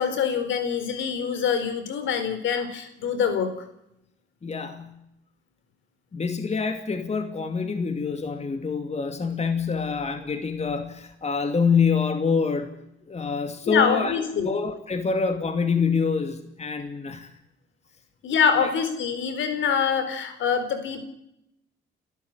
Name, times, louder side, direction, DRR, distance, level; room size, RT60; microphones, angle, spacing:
voice 1, 0.0-3.5 13.7-14.5 18.2-21.1, left 6 dB, 75° left, 9 dB, 4.3 m, -25 dB
voice 2, 4.4-5.0 6.1-12.7 13.1-17.3 18.6-18.7, left 5 dB, 35° left, 7 dB, 2.6 m, -26 dB
30.0 x 13.0 x 9.7 m, 0.82 s
cardioid pair, 90°, 20 cm